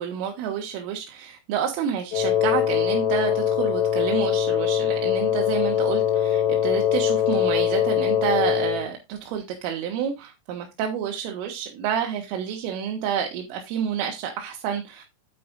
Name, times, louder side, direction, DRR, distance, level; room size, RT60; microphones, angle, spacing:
voice 1, 0.0-15.0, right 8 dB, 85° right, 4.0 m, -29 dB
Wind instrument woodwind instrument, 2.1-8.9, left 10 dB, 60° left, 2.6 m, -22 dB
9.5 x 9.0 x 2.5 m
omnidirectional pair, 5.8 m